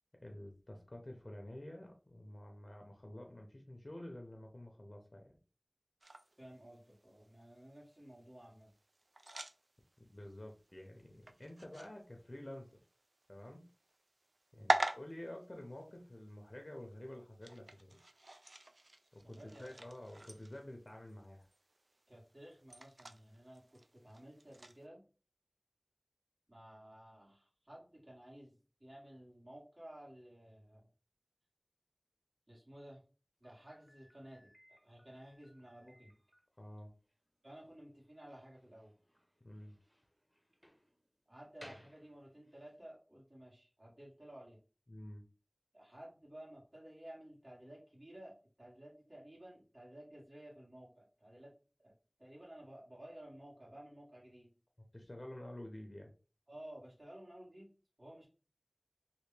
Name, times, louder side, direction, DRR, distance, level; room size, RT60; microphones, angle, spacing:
voice 1, 0.2-5.4 10.1-12.8 13.3-13.6 14.5-18.0 19.1-21.5 36.6-36.9 39.4-39.8 44.9-45.2 54.9-56.1, left 1 dB, 55° left, 2 dB, 0.6 m, -50 dB
sound 1, 6.0-24.8, right 2 dB, 80° right, 0.3 m, -45 dB
voice 2, 6.4-8.7 14.6-14.7 19.2-19.7 22.1-25.0 26.5-30.9 32.5-33.0 33.4-36.2 37.4-38.9 41.3-44.6 45.7-51.5 51.8-51.9 52.2-54.5 56.5-57.7 58.0-58.3, right 1 dB, 55° right, -5 dB, 1.8 m, -54 dB
Slam, 33.4-42.8, equal, ahead, 0.9 m, -63 dB
3.3 x 2.3 x 3.2 m, 0.35 s
wide cardioid pair, 40°, 0 cm